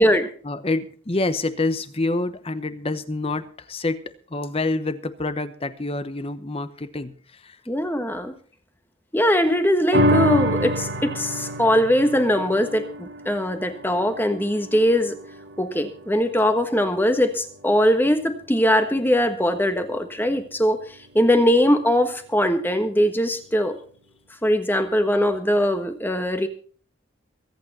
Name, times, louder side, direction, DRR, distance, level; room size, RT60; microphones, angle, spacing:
voice 1, 0.4-4.0 4.3-7.6, left 2 dB, 30° left, 12 dB, 1.0 m, -27 dB
voice 2, 7.7-8.3 9.1-15.2 15.6-20.8 21.1-23.8 24.4-26.5, equal, 10° left, 8 dB, 1.3 m, -21 dB
sound 1, 9.9-16.6 17.1-17.2, equal, 60° right, 1.6 m, -27 dB
23.0 x 8.8 x 4.2 m, 0.43 s
head